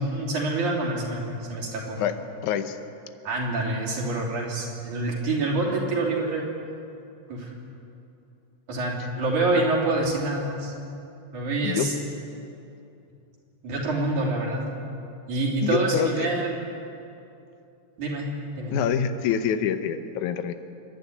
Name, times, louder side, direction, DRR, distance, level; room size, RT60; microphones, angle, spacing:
voice 1, 0.0-2.0 3.2-6.4 7.3-7.5 8.7-10.7 11.3-11.9 13.6-14.6 15.3-16.7 18.0-18.3 18.6-18.9, right 2 dB, 85° right, -2 dB, 4.8 m, -26 dB
voice 2, 2.4-2.8 11.6-11.9 15.6-16.1 18.7-20.5, left 9 dB, 80° left, 9 dB, 2.3 m, -26 dB
26.0 x 11.0 x 9.5 m, 2.7 s
omnidirectional pair, 3.4 m